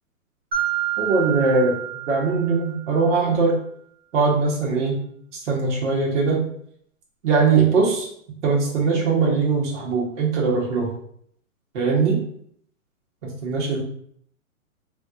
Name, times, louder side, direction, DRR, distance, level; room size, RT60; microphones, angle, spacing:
Mallet percussion, 0.5-3.1, right 11 dB, 15° right, 0.6 m, -28 dB
voice 1, 1.0-1.8 2.1-3.6 4.1-5.0 5.3-6.4 7.2-8.1 8.4-10.9 11.7-12.2 13.4-13.8, right 4 dB, 55° right, -3 dB, 1.0 m, -21 dB
2.5 x 2.3 x 3.7 m, 0.65 s
hypercardioid pair, 150°, 44 cm